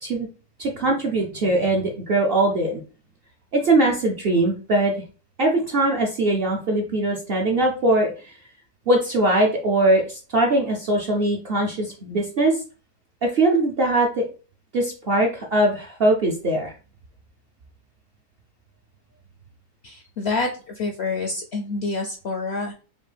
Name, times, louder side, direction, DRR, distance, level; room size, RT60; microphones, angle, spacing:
voice 1, 0.6-2.8 3.5-5.0 5.4-8.3 8.9-12.6 13.2-14.2 14.7-16.7, right 2 dB, 55° right, 0 dB, 0.6 m, -21 dB
voice 2, 19.8-20.5 20.7-22.7, left 3 dB, 65° left, 3 dB, 0.6 m, -27 dB
5.2 x 2.1 x 3.3 m, 0.36 s
omnidirectional pair, 1.6 m